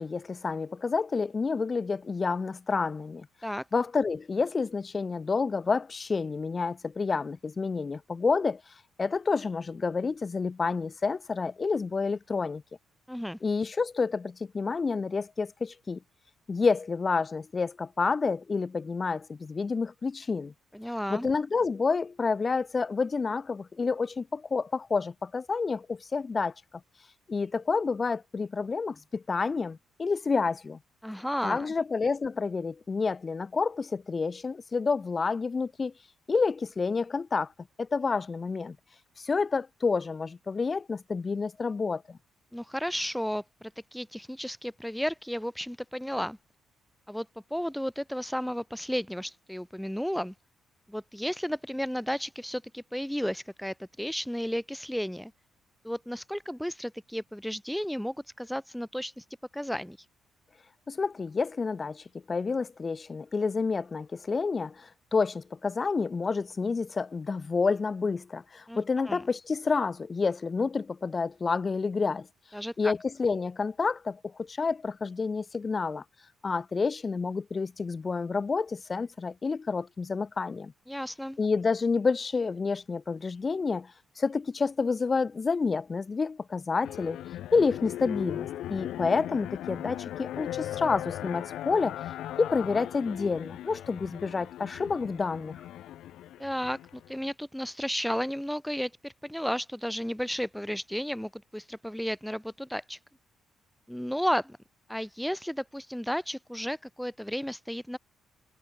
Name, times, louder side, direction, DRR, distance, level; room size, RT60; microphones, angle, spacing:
voice 1, 0.0-3.3 3.7-8.6 9.0-12.6 13.4-16.0 16.5-20.5 21.1-26.5 27.3-30.8 31.4-35.9 36.3-37.5 37.8-38.8 39.2-42.2 60.9-72.3 72.8-76.0 76.4-80.7 81.4-87.2 87.5-92.0 92.4-95.6, left 4 dB, 35° left, 0.8 m, -29 dB
voice 2, 13.1-13.4 20.7-21.3 31.0-31.7 42.5-46.4 47.1-47.3 47.5-50.3 50.9-55.3 55.8-59.2 59.5-60.1 68.7-69.2 72.5-72.9 80.9-81.4 96.4-103.0 103.9-104.6 104.9-108.0, equal, ahead, 0.4 m, -33 dB
sound 1, 86.8-97.3, left 13 dB, 80° left, 1.1 m, -38 dB
cardioid pair, 90°, 0 cm